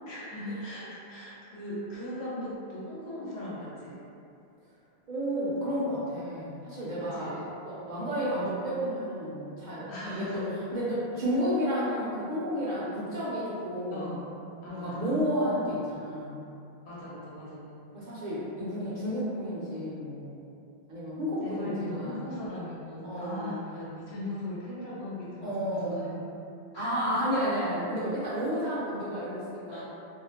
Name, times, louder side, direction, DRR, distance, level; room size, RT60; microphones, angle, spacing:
voice 1, 0.1-4.0 7.0-7.4 7.9-8.1 9.9-10.5 13.9-14.3 14.6-15.3 16.8-17.8 21.4-26.1 26.7-27.2 29.7-29.8, left 1 dB, 85° left, -8 dB, 1.0 m, -38 dB
voice 2, 5.1-7.4 7.7-10.4 10.7-14.1 14.7-16.4 17.9-20.5 20.9-22.2 23.0-23.6 25.4-26.2 26.7-29.8, equal, 55° right, -9 dB, 0.6 m, -31 dB
2.4 x 2.0 x 2.7 m, 2.6 s
omnidirectional pair, 1.1 m